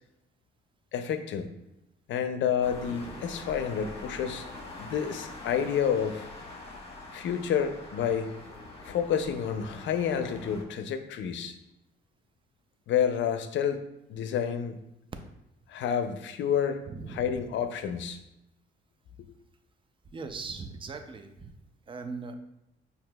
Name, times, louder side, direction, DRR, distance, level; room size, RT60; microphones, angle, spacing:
voice 1, 0.9-1.5 2.1-4.4 4.8-6.2 7.1-8.3 8.8-11.6 12.9-13.8 14.1-14.8 15.7-16.8 17.1-18.2 19.2-19.3, left 8 dB, 70° left, 8 dB, 0.5 m, -29 dB
sound 1, 2.6-10.6, left 2 dB, 30° left, 1.2 m, -44 dB
voice 2, 16.9-17.3 20.1-21.6 21.9-22.3, right 4 dB, 25° right, 7 dB, 0.5 m, -39 dB
5.7 x 2.8 x 2.3 m, 0.88 s
cardioid pair, 90°, 20 cm